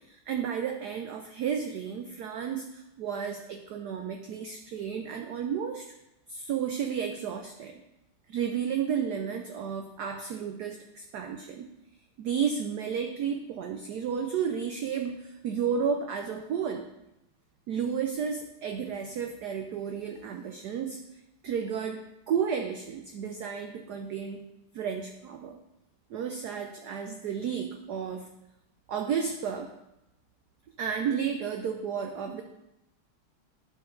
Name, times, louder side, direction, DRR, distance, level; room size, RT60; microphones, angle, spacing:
voice 1, 0.1-5.9 6.3-7.8 8.3-11.7 12.2-16.9 17.7-21.0 21.4-22.0 22.3-24.4 24.7-25.6 26.1-28.3 28.9-29.7 30.8-32.4, right 7 dB, 75° right, 5 dB, 0.9 m, -32 dB
10.5 x 5.2 x 3.8 m, 0.87 s
omnidirectional pair, 2.4 m